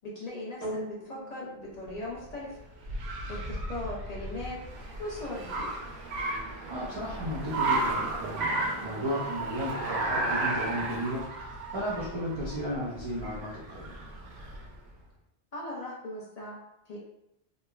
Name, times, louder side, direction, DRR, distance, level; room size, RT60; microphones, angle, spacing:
voice 1, 0.0-2.6 3.3-4.6 5.0-5.7 15.5-16.6 16.9-17.0, left 1 dB, 45° left, -5 dB, 0.7 m, -39 dB
sound 1, 0.6-9.2 9.9-10.0, equal, 15° left, 0.8 m, -46 dB
Car, 1.9-14.8, right 2 dB, 90° right, 0.8 m, -34 dB
voice 2, 6.7-13.9, equal, 45° right, -8 dB, 0.4 m, -34 dB
3.1 x 2.1 x 2.3 m, 0.83 s
omnidirectional pair, 1.0 m